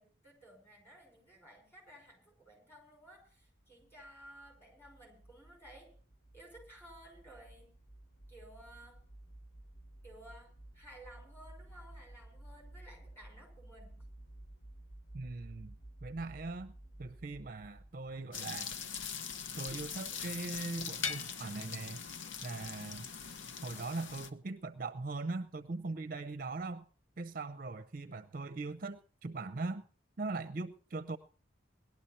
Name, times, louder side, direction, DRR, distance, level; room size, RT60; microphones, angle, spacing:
voice 1, 0.0-5.9 6.3-7.7 8.3-9.0 10.0-14.1, right 1 dB, 10° left, 1 dB, 5.5 m, -56 dB
sound 1, 3.1-18.4, right 1 dB, 60° left, 1.3 m, -54 dB
voice 2, 15.1-15.8 16.0-16.7 17.0-18.8 19.6-22.0 22.4-23.1 23.6-26.8 27.2-29.8 30.2-31.2, right 3 dB, 45° right, 10 dB, 0.5 m, -40 dB
sound 2, 18.3-24.3, left 6 dB, 75° left, 0.9 m, -41 dB
19.0 x 12.0 x 4.2 m, 0.41 s
head